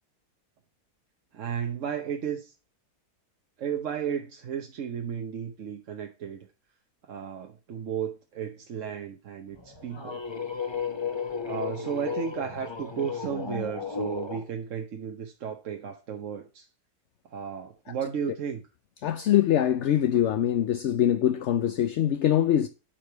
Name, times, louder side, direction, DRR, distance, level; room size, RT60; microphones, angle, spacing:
voice 1, 1.3-2.5 3.6-6.5 7.0-10.2 11.4-16.7 17.3-18.6, right 8 dB, 55° right, 1.1 m, -34 dB
sound 1, 9.6-14.4, left 6 dB, 20° left, 1.1 m, -34 dB
voice 2, 19.0-22.7, left 11 dB, 65° left, 0.7 m, -23 dB
8.9 x 5.0 x 4.5 m
omnidirectional pair, 1.7 m